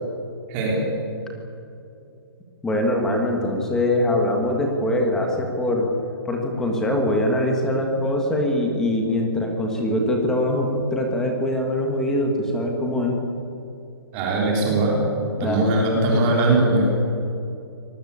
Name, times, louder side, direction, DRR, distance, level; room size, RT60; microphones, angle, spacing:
voice 1, 0.5-0.9 14.1-15.0 15.4-16.9, right 2 dB, 15° right, -2 dB, 3.6 m, -20 dB
voice 2, 2.6-5.9 6.2-13.1 15.4-15.8 16.1-16.2, left 1 dB, 5° left, 1 dB, 1.5 m, -23 dB
25.0 x 19.5 x 8.7 m, 2.6 s
hypercardioid pair, 180°, 13 cm